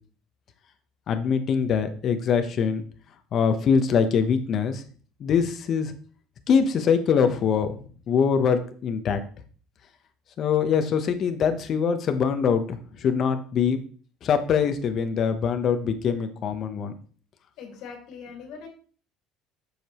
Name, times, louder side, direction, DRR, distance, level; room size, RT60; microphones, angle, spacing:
voice 1, 1.1-2.8 3.3-4.8 5.2-5.9 6.5-7.7 8.1-9.2 10.4-13.8 14.2-16.9, left 6 dB, 40° left, 9 dB, 0.9 m, -23 dB
voice 2, 17.6-18.7, left 6 dB, 65° left, 2 dB, 2.2 m, -41 dB
7.8 x 6.7 x 3.1 m, 0.41 s
cardioid pair, 145°, 0 cm